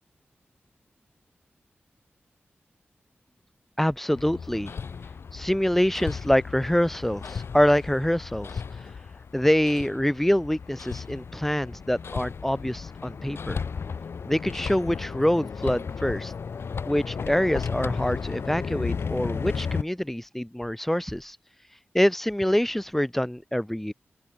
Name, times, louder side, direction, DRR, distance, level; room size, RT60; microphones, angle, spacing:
voice 1, 3.8-4.7 5.3-8.5 9.3-13.6 14.3-16.3 16.9-21.4 21.9-23.9, equal, 5° left, 2.2 m, -25 dB
Hammer, 4.2-19.8, left 5 dB, 80° left, 2.4 m, -34 dB
open air
wide cardioid pair, 100°, 4 cm